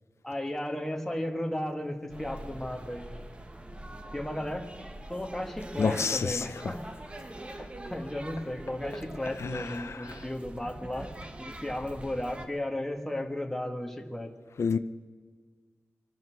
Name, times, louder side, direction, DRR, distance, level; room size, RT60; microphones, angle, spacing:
voice 1, 0.2-3.1 4.1-6.8 7.5-11.1 11.4-14.3, left 1 dB, 5° left, 3 dB, 1.5 m, -35 dB
sound 1, 2.1-12.5, right 1 dB, 25° right, 1.2 m, -43 dB
voice 2, 5.8-6.5 9.4-10.0 14.6-14.8, left 5 dB, 70° left, 10 dB, 0.5 m, -28 dB
24.0 x 12.5 x 4.7 m, 1.5 s
wide cardioid pair, 105°, 5 cm